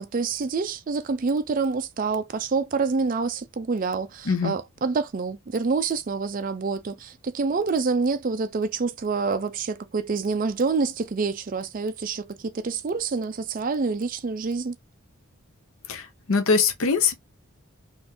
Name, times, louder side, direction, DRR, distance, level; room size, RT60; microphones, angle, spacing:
voice 1, 0.0-14.7, right 4 dB, 40° right, 0.4 m, -27 dB
voice 2, 15.9-17.2, left 5 dB, 70° left, 0.6 m, -23 dB
3.6 x 2.6 x 2.6 m
head